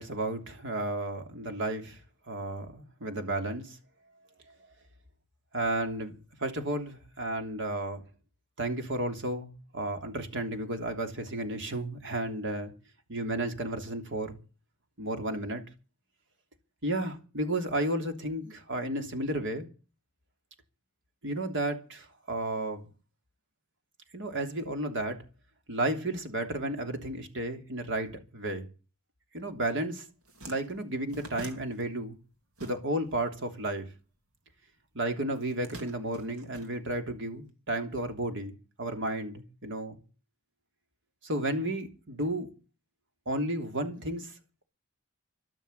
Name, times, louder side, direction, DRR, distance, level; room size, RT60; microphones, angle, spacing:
voice 1, 0.0-2.0 2.3-3.8 5.5-8.0 8.6-12.7 13.1-14.4 15.0-15.6 16.8-19.7 21.2-22.9 24.1-25.2 25.7-28.7 29.3-30.1 30.5-32.2 32.6-33.9 34.9-40.0 41.2-42.5 43.3-44.3, right 1 dB, 60° right, 3.2 m, -33 dB
sound 1, 29.7-29.8 30.1-33.2 33.5-34.7 35.3-37.3, right 1 dB, 80° right, 3.1 m, -47 dB
12.5 x 12.5 x 8.1 m
head